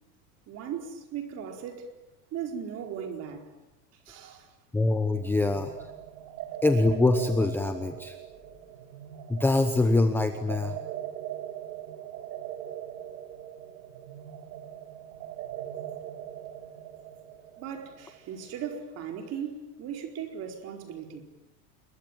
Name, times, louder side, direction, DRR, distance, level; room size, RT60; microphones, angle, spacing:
voice 1, 0.5-1.9 2.3-3.5 4.1-4.5 17.6-21.2, right 8 dB, 30° right, 4.5 m, -37 dB
voice 2, 4.7-5.7 6.6-8.2 9.3-10.8, left 2 dB, 5° left, 0.9 m, -24 dB
sound 1, 5.1-18.7, right 11 dB, 85° right, 3.3 m, -41 dB
27.5 x 23.0 x 9.0 m
supercardioid pair, 165°, 47 cm